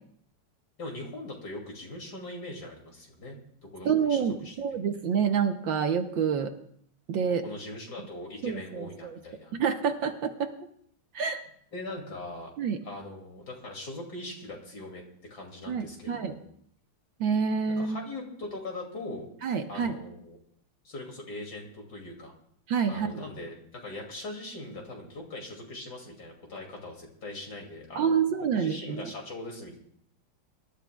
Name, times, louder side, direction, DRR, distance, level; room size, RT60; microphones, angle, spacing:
voice 1, 0.8-3.4 3.6-4.5 7.4-9.5 11.7-12.5 12.8-16.4 17.7-19.3 19.7-20.4 20.8-22.3 22.9-28.2 28.5-29.8, left 2 dB, 50° left, 0 dB, 3.0 m, -41 dB
voice 2, 3.8-6.5 7.1-7.4 8.4-9.2 9.5-10.5 11.1-11.4 12.6-12.8 15.7-16.3 17.2-18.1 19.4-20.0 22.7-23.1 28.0-29.1, right 6 dB, 70° right, 6 dB, 1.5 m, -28 dB
25.5 x 12.5 x 2.3 m, 0.66 s
omnidirectional pair, 2.4 m